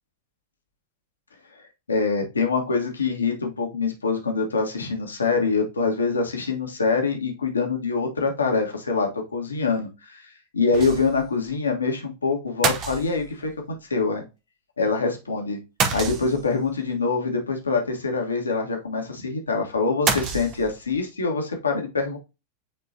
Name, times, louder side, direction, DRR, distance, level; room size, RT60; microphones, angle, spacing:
voice 1, 1.9-10.2 10.5-14.2 14.8-15.6 15.9-22.2, left 4 dB, 75° left, 3 dB, 1.4 m, -25 dB
sound 1, 10.7-11.3 11.6-11.7 12.6-13.5 15.8-16.7 20.1-21.0, right 6 dB, 35° right, 1.0 m, -27 dB
9.1 x 3.8 x 2.7 m, 0.26 s
figure-of-eight pair, 90°, 0 cm